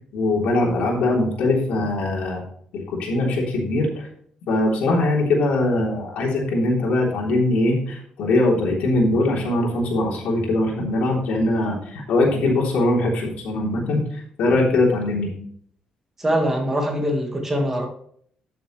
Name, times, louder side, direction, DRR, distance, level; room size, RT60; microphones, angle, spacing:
voice 1, 0.1-2.4 2.7-4.1 4.5-15.3, left 2 dB, 80° left, -2 dB, 3.3 m, -21 dB
voice 2, 16.2-17.9, equal, 15° right, 2 dB, 1.8 m, -23 dB
12.5 x 6.9 x 3.2 m, 0.63 s
cardioid pair, 155°, 2 cm